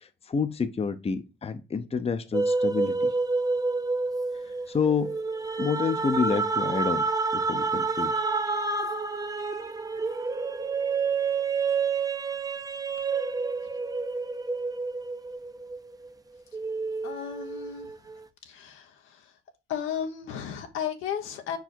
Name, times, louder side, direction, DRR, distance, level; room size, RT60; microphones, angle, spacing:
voice 1, 0.3-3.1 4.7-5.1 5.6-7.1 7.3-8.1, left 5 dB, 30° left, 0.8 m, -28 dB
sound 1, 2.3-16.1 16.5-18.2, right 4 dB, 20° right, 0.7 m, -29 dB
voice 2, 17.0-17.9 18.4-19.3 19.7-21.6, left 8 dB, 90° left, 1.3 m, -34 dB
4.9 x 4.7 x 4.4 m
cardioid pair, 90°, 20 cm